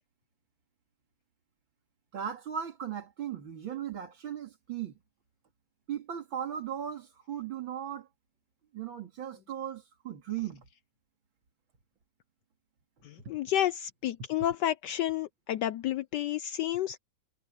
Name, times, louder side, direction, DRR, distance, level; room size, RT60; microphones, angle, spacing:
voice 1, 2.1-4.9 5.9-8.1 8.7-10.6, right 9 dB, 70° right, 3.0 m, -37 dB
voice 2, 13.0-17.0, left 12 dB, 75° left, 1.0 m, -30 dB
omnidirectional pair, 2.2 m